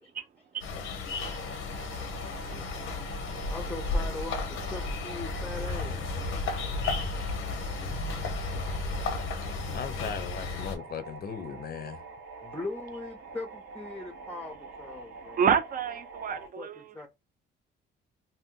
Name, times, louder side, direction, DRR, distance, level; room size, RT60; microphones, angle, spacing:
sound 1, 0.6-10.8, left 3 dB, 85° left, 0.7 m, -33 dB
sound 2, 1.1-16.5, right 3 dB, 85° right, 0.8 m, -46 dB
voice 1, 3.0-6.1 12.4-15.4 16.3-17.1, left 2 dB, 5° left, 0.6 m, -41 dB
voice 2, 9.7-12.0, left 7 dB, 50° left, 0.6 m, -37 dB
voice 3, 15.3-17.1, right 7 dB, 45° right, 0.6 m, -28 dB
2.7 x 2.1 x 3.6 m
cardioid pair, 90°, 20 cm